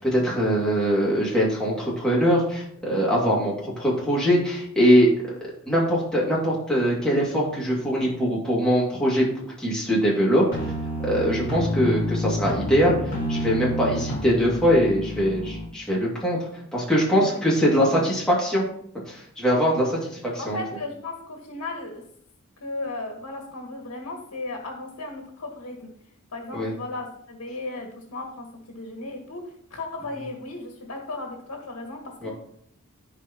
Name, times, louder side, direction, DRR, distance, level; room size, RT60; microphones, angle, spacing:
voice 1, 0.0-5.3 5.7-9.3 9.6-10.4 11.0-13.0 13.3-16.4 16.7-18.6 18.9-20.6 26.5-26.7 32.2-32.3, equal, 5° left, -6 dB, 2.4 m, -22 dB
sound 1, 10.5-15.7, equal, 40° left, 2.0 m, -29 dB
voice 2, 17.1-17.4 17.9-18.0 19.9-20.0 20.4-22.0 22.6-25.9 26.3-32.3, left 2 dB, 85° left, 2 dB, 1.6 m, -36 dB
14.0 x 4.9 x 3.0 m, 0.67 s
head